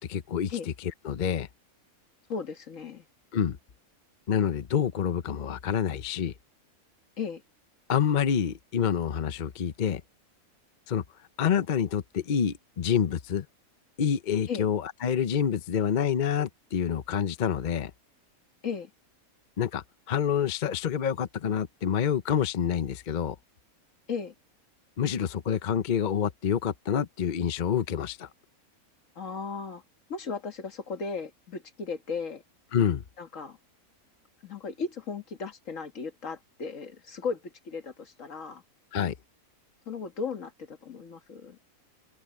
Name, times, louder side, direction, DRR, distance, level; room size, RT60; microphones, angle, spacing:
voice 1, 0.0-1.5 3.3-3.6 4.3-6.3 7.9-10.0 10.9-11.0 11.4-13.5 14.0-17.9 19.6-23.4 25.0-28.3 32.7-33.0 38.9-39.1, left 8 dB, 45° left, 0.6 m, -27 dB
voice 2, 2.3-3.1 7.2-7.4 14.5-14.7 18.6-18.9 24.1-24.3 29.2-29.8 30.1-32.4 33.2-33.6 34.4-38.6 39.9-41.6, left 5 dB, 60° left, 1.9 m, -36 dB
open air
omnidirectional pair, 1.5 m